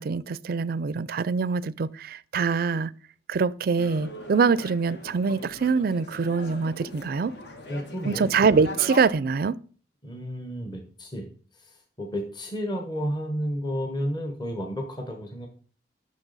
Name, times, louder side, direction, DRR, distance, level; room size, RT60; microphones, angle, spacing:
voice 1, 0.0-2.9 3.3-7.3 8.0-9.5, right 5 dB, 55° right, 0.4 m, -24 dB
sound 1, 3.8-9.1, left 2 dB, 65° left, 1.4 m, -40 dB
voice 2, 7.7-8.2 10.0-11.3 12.0-15.5, equal, 25° left, 1.2 m, -31 dB
9.8 x 6.4 x 4.1 m
head